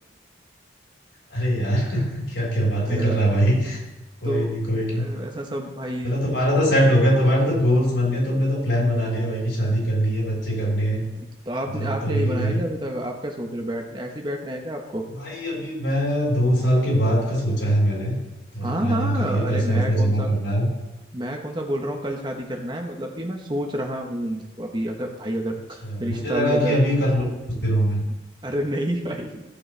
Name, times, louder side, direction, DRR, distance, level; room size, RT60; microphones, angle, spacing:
voice 1, 1.3-3.8 4.2-5.1 6.0-11.0 11.7-12.6 15.2-18.2 18.5-20.7 25.8-27.3 27.6-28.0, equal, 80° left, -3 dB, 4.2 m, -22 dB
voice 2, 2.9-3.2 4.2-6.1 11.1-15.0 18.6-20.3 21.1-26.8 28.4-29.3, equal, 25° right, 2 dB, 1.0 m, -29 dB
15.0 x 7.2 x 3.3 m, 1.0 s
head